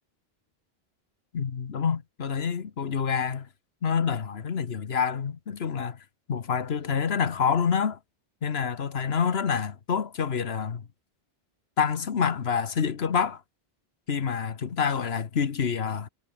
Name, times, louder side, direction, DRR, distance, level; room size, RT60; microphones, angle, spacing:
voice 1, 1.3-3.5 3.8-6.0 6.3-8.0 8.4-10.8 11.8-13.4 14.1-16.1, left 6 dB, 80° left, 1.5 m, -27 dB
omnidirectional pair, 1.0 m